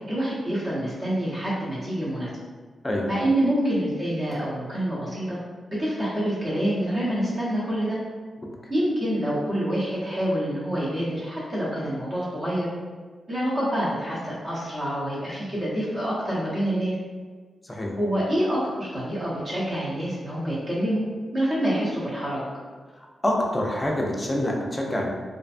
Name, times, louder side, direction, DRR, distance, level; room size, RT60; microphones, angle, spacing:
voice 1, 0.1-2.3 3.1-5.4 5.8-8.0 8.7-12.7 13.3-16.9 18.0-21.0 21.3-22.4, right 1 dB, 35° right, -8 dB, 0.9 m, -26 dB
voice 2, 17.6-17.9 23.0-25.1, left 1 dB, 15° left, -1 dB, 0.4 m, -26 dB
2.5 x 2.2 x 2.5 m, 1.5 s
wide cardioid pair, 110°, 0 cm